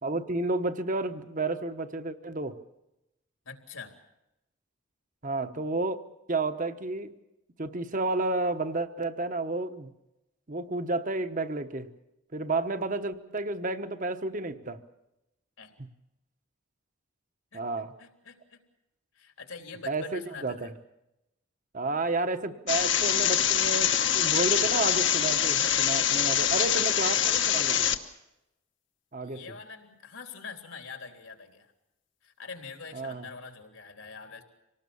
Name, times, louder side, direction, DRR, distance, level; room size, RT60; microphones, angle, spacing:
voice 1, 0.0-2.6 5.2-6.0 6.3-7.1 7.6-9.9 10.5-11.9 12.3-14.8 17.5-17.9 19.9-20.7 21.7-27.9 29.1-29.4 32.9-33.3, right 2 dB, 40° right, 9 dB, 1.1 m, -31 dB
voice 2, 3.4-4.0 15.6-15.7 17.5-18.6 19.1-20.7 26.3-27.5 29.2-31.7 32.2-34.4, left 5 dB, 80° left, 4 dB, 3.5 m, -45 dB
sound 1, 22.7-28.0, left 9 dB, 60° left, 1.2 m, -24 dB
25.5 x 19.0 x 7.1 m, 0.91 s
head